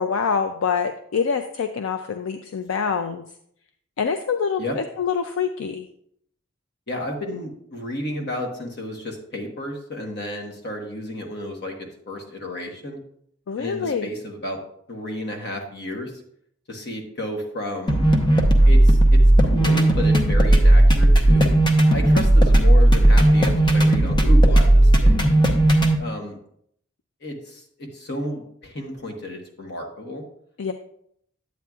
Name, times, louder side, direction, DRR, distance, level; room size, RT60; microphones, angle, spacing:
voice 1, 0.0-3.2 4.0-5.8 13.5-14.1 30.6-30.7, left 6 dB, 70° left, 8 dB, 0.4 m, -25 dB
voice 2, 6.9-13.0 13.6-14.6 14.9-16.1 16.7-18.0 18.6-21.5 21.9-25.2 26.0-26.4 27.2-30.2, left 1 dB, 55° left, 2 dB, 1.2 m, -32 dB
sound 1, 17.9-25.9, right 1 dB, 25° left, 0.7 m, -15 dB
9.2 x 8.4 x 2.4 m, 0.70 s
head